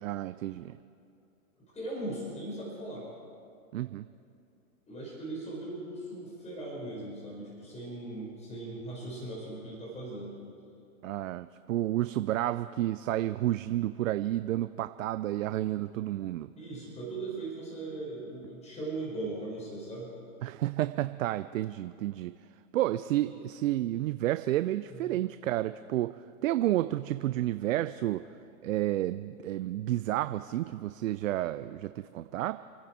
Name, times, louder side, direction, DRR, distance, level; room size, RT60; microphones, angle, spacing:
voice 1, 0.0-0.8 3.7-4.1 11.0-16.5 20.4-22.3 22.7-28.3 28.6-32.6, right 14 dB, 65° right, 12 dB, 0.6 m, -31 dB
voice 2, 1.7-3.1 4.9-10.4 16.6-20.1 23.3-23.4 24.9-25.2, right 2 dB, 15° left, -4 dB, 4.8 m, -39 dB
29.0 x 9.8 x 4.5 m, 2.6 s
hypercardioid pair, 115°, 42 cm